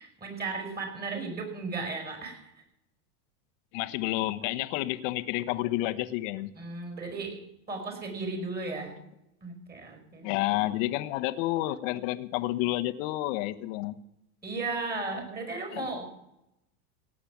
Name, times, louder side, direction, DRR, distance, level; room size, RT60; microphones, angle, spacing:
voice 1, 0.0-2.5 6.5-7.4 7.7-9.0 9.4-10.3 14.4-16.1, right 3 dB, 20° right, 5 dB, 5.3 m, -35 dB
voice 2, 3.7-6.5 10.2-14.0 15.7-16.1, left 16 dB, 55° left, 11 dB, 1.1 m, -30 dB
17.0 x 8.7 x 7.3 m, 0.88 s
supercardioid pair, 120°, 46 cm